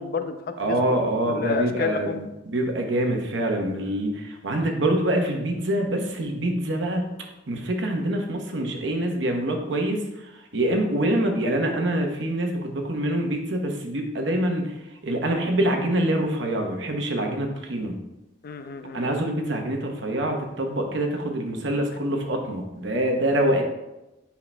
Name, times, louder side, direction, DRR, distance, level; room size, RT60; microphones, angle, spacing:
voice 1, 0.0-1.0 1.2-2.2 15.6-15.7 18.4-19.2, left 5 dB, 55° left, 8 dB, 0.4 m, -30 dB
voice 2, 0.6-7.1 7.5-14.7 15.0-18.0 18.9-23.6, right 1 dB, 75° right, 3 dB, 0.9 m, -25 dB
8.4 x 5.7 x 2.2 m, 0.99 s
head